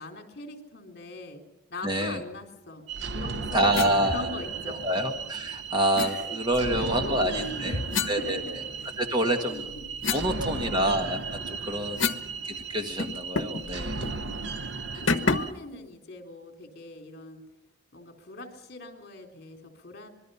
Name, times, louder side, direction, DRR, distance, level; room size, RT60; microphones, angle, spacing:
voice 1, 0.0-1.4 1.7-2.9 3.1-5.0 6.0-9.0 9.4-9.9 10.1-10.8 11.6-12.3 14.3-14.6 14.9-17.4 17.9-20.1, left 1 dB, 50° left, 4 dB, 3.8 m, -41 dB
voice 2, 1.8-2.2 3.5-4.3 4.7-7.8 8.1-8.6 9.0-9.7 10.1-12.1 12.4-14.0, right 1 dB, 20° right, 5 dB, 1.8 m, -27 dB
sound 1, 2.9-15.5, right 4 dB, 55° right, 0.9 m, -35 dB
sound 2, 3.7-4.0 6.0-6.1 7.9-9.0 9.4-12.3 12.6-12.7 13.0-13.7 14.0-14.2 15.1-15.6, left 4 dB, 65° left, 1.1 m, -30 dB
25.5 x 22.0 x 5.7 m, 0.93 s
head